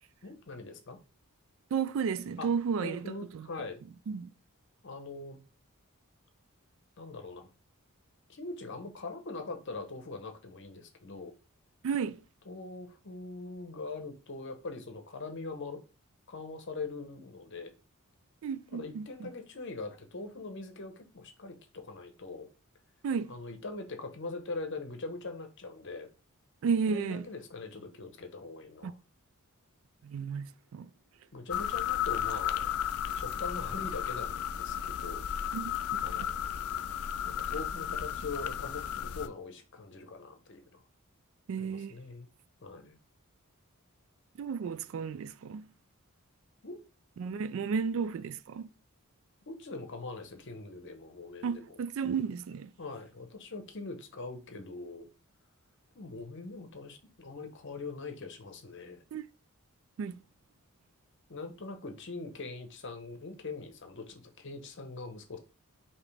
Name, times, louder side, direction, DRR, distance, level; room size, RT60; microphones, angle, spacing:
voice 1, 0.2-1.0 2.4-2.5 2.8-3.8 4.8-5.4 7.0-7.5 8.3-11.3 12.4-15.8 16.3-17.7 18.7-22.5 23.3-26.1 26.9-28.9 31.3-32.8 33.1-35.2 36.0-36.3 37.2-40.8 41.6-42.3 42.6-43.0 46.6-46.8 49.5-51.8 52.8-55.1 55.9-59.0 61.3-65.4, left 3 dB, 55° left, 0.8 m, -42 dB
voice 2, 1.7-3.5 4.1-4.3 11.8-12.2 18.4-19.3 23.0-23.3 26.6-27.3 28.8-28.9 30.0-30.9 35.5-35.7 41.5-41.9 44.4-45.7 47.2-48.7 51.4-52.7 59.1-59.2 60.0-60.2, right 6 dB, 60° right, 0.3 m, -33 dB
sound 1, 31.5-39.3, left 9 dB, 80° left, 0.4 m, -34 dB
4.9 x 2.9 x 3.3 m
head